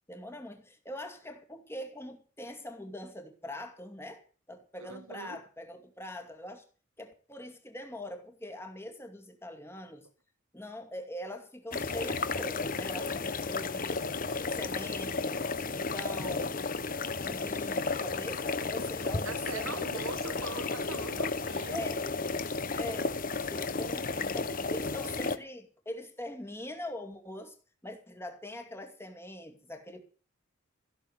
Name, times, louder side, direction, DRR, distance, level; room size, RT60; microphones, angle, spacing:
voice 1, 0.1-4.2 4.5-6.6 7.0-10.1 10.5-14.0 14.5-16.7 17.2-20.6 21.7-22.0 22.7-23.1 23.5-27.6 27.8-30.0, left 1 dB, 10° left, 2.3 m, -43 dB
voice 2, 4.8-5.4 19.2-21.9, right 3 dB, 80° right, 1.1 m, -42 dB
sound 1, 11.7-25.4, left 4 dB, 40° left, 1.0 m, -33 dB
15.5 x 6.9 x 9.4 m
head